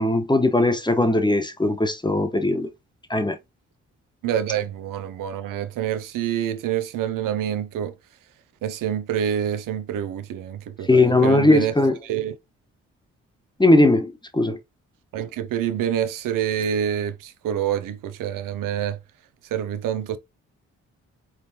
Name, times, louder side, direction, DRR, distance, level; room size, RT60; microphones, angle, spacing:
voice 1, 0.0-2.7 3.1-3.4 10.9-11.9 13.6-14.6, left 2 dB, 15° left, 1.2 m, -19 dB
voice 2, 4.2-7.9 8.6-11.7 12.0-12.3 15.1-19.0 19.5-20.2, right 9 dB, 70° right, 0.8 m, -27 dB
4.3 x 3.6 x 2.9 m
hypercardioid pair, 45°, 33 cm